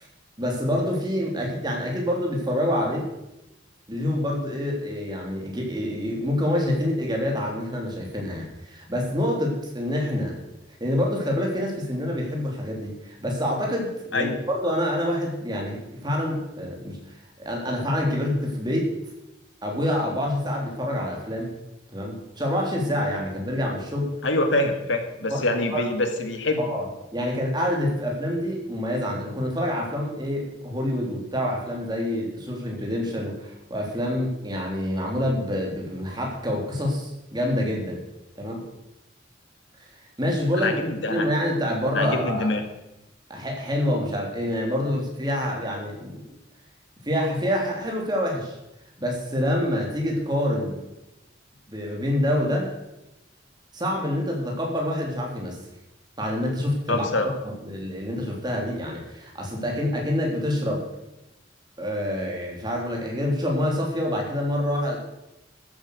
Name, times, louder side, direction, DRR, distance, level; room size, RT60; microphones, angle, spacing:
voice 1, 0.4-3.1 3.9-10.3 10.8-17.0 17.4-18.9 19.6-21.5 21.9-24.2 25.3-25.4 25.7-25.8 26.6-26.8 27.1-38.0 38.4-38.6 40.2-40.7 41.1-42.5 43.3-46.2 47.0-48.6 49.0-50.8 51.7-52.7 53.7-55.6 56.2-60.8 61.8-65.0, left 1 dB, 20° right, -1 dB, 3.4 m, -27 dB
voice 2, 24.2-26.6 40.6-41.3 41.9-42.6 56.9-57.3, left 2 dB, 80° left, 6 dB, 2.0 m, -25 dB
14.0 x 8.6 x 6.6 m, 0.94 s
head